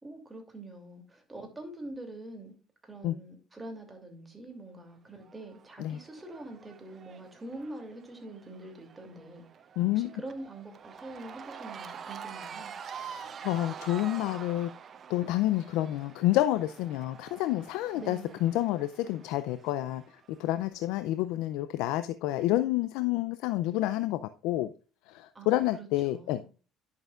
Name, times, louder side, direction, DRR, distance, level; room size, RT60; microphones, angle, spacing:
voice 1, 0.0-2.6 2.8-9.4 9.9-12.7 17.9-18.4 25.3-26.5, right 2 dB, 20° right, 2.7 m, -44 dB
Cheering / Crowd, 5.2-20.5, right 7 dB, 45° right, 0.6 m, -47 dB
voice 2, 9.8-10.1 12.9-14.7 15.1-24.7 25.1-26.4, left 15 dB, 80° left, 0.4 m, -29 dB
10.5 x 6.7 x 2.4 m
supercardioid pair, 90°, 0 cm